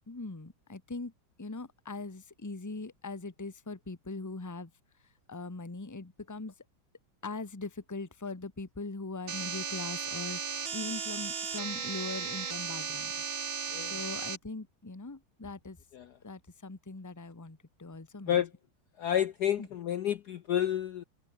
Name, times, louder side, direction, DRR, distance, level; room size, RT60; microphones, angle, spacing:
voice 1, 0.1-1.1 1.4-4.7 5.3-6.5 7.2-13.2 13.9-15.8 16.2-18.4 19.6-19.7, left 3 dB, 10° left, 1.1 m, -41 dB
sound 1, 9.3-14.4, right 6 dB, 65° right, 3.3 m, -36 dB
voice 2, 19.0-21.0, left 10 dB, 60° left, 1.1 m, -30 dB
omnidirectional pair, 2.3 m